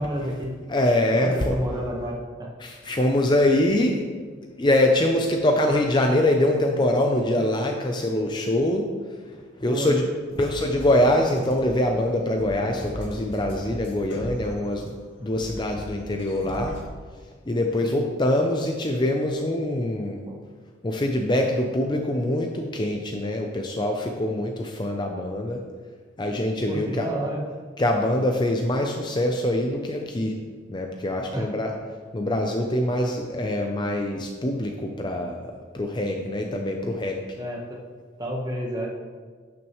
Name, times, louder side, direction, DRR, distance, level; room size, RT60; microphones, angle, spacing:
voice 1, 0.0-0.5 1.1-2.5 9.7-9.9 17.8-18.0 20.3-20.4 22.3-22.4 26.6-27.4 31.3-31.5 37.3-37.8 38.2-38.9, right 1 dB, 20° right, -1 dB, 1.1 m, -30 dB
voice 2, 0.7-1.6 2.6-4.0 4.6-8.9 9.6-10.0 10.4-14.9 15.2-16.8 17.5-20.2 20.8-25.6 26.2-27.1 27.8-30.4 30.7-31.7 32.1-35.4 35.7-37.2, left 1 dB, 20° left, 2 dB, 0.5 m, -24 dB
sound 1, 10.3-14.9 15.2-16.9, equal, 65° left, 2.0 m, -39 dB
11.5 x 6.0 x 3.1 m, 1.6 s
head